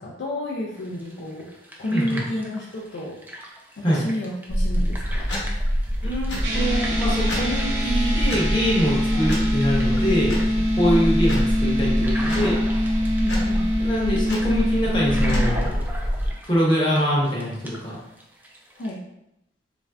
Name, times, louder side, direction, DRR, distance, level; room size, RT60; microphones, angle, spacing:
voice 1, 0.0-1.5 1.8-3.2 3.8-5.3 9.1-9.3 10.8-11.1 13.2-13.6 18.8-19.0, left 1 dB, 65° left, -3 dB, 0.4 m, -31 dB
sound 1, 0.7-18.9, equal, 10° right, 0.3 m, -40 dB
voice 2, 1.9-2.2 3.8-4.0 6.0-12.5 13.8-15.9 16.4-18.0, equal, 25° left, -5 dB, 0.8 m, -24 dB
sound 2, 4.5-16.3, equal, 85° left, 0.9 m, -25 dB
sound 3, 6.4-15.5, equal, 90° right, 0.6 m, -25 dB
3.2 x 2.5 x 2.3 m, 0.83 s
head